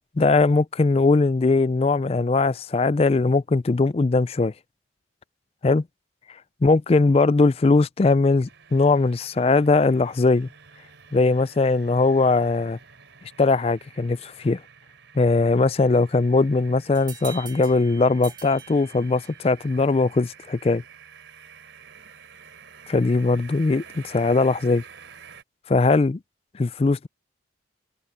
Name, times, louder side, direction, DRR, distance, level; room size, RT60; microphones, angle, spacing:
voice 1, 0.2-4.5 5.6-5.8 6.6-10.5 11.1-12.8 13.4-14.6 15.1-20.8 22.9-24.8 25.7-26.2 26.5-27.1, left 3 dB, 30° left, 0.4 m, -20 dB
sound 1, 8.5-25.4, right 6 dB, 75° right, 3.6 m, -49 dB
sound 2, 16.9-19.5, right 6 dB, 25° right, 2.0 m, -43 dB
head